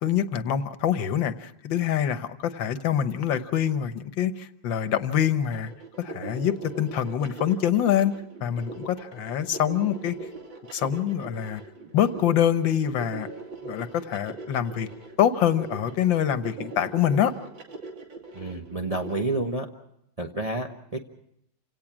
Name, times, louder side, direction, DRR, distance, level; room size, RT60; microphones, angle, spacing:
voice 1, 0.0-5.7 6.0-8.1 8.4-10.2 10.7-11.6 11.9-13.3 13.6-14.9 15.2-17.3, left 9 dB, 85° left, 11 dB, 1.7 m, -25 dB
sound 1, 5.5-19.2, right 3 dB, 80° right, 3.4 m, -40 dB
voice 2, 18.3-19.7 20.2-21.0, right 2 dB, 25° right, 2 dB, 0.9 m, -29 dB
28.0 x 17.5 x 6.1 m, 0.76 s
omnidirectional pair, 2.0 m